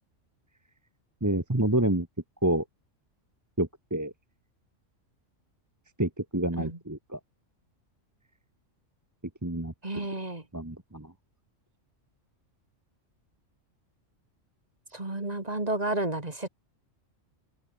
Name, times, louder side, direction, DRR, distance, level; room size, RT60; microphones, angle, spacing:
voice 1, 1.2-2.1 2.4-2.6 3.6-4.1 6.0-7.2 9.4-10.1 10.5-11.1, right 1 dB, 15° right, 1.6 m, -28 dB
voice 2, 9.8-10.4 14.9-16.5, right 2 dB, 30° right, 2.9 m, -31 dB
open air
omnidirectional pair, 1.3 m